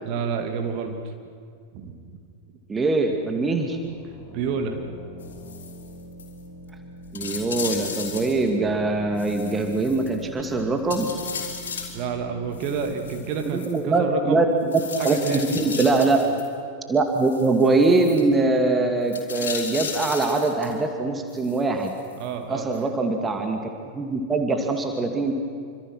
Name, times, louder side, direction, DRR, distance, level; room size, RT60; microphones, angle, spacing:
voice 1, 0.0-1.1 1.7-2.0 4.3-4.8 11.9-14.4 15.0-16.4 22.2-22.9, right 6 dB, 40° right, 5 dB, 2.6 m, -29 dB
voice 2, 2.7-3.8 7.1-11.1 13.5-14.5 15.0-16.2 16.9-21.9 22.5-23.6 24.0-25.3, right 3 dB, 15° right, 4 dB, 2.3 m, -22 dB
sound 1, 3.5-15.0, equal, 30° left, 3.9 m, -44 dB
sound 2, 5.2-5.9 6.2-6.3 6.7-6.8 7.1-8.5 9.2-10.5 10.9-12.0 12.5-13.8 14.7-16.5 17.2-18.2 19.1-20.8 21.3-22.3 22.7-22.8, left 6 dB, 65° left, 4.0 m, -35 dB
27.0 x 25.5 x 6.3 m, 2.2 s
figure-of-eight pair, 90°, 0 cm